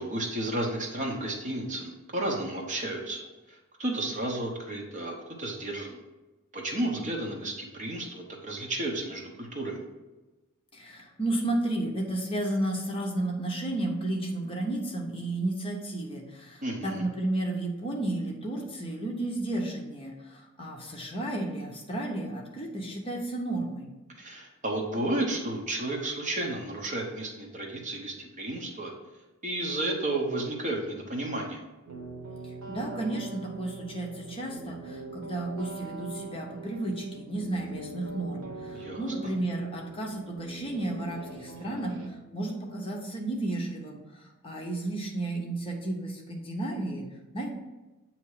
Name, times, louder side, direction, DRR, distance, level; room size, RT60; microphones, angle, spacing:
voice 1, 0.0-3.2 3.5-6.0 6.5-9.8 16.6-17.0 24.2-28.9 29.4-31.6 38.7-39.0, right 1 dB, 35° right, 0 dB, 0.9 m, -32 dB
voice 2, 10.7-23.9 32.4-47.1 47.3-47.5, right 2 dB, 25° left, 0 dB, 0.8 m, -33 dB
sound 1, 31.9-42.1, right 3 dB, 75° right, 1.0 m, -42 dB
8.2 x 2.9 x 4.8 m, 1.1 s
head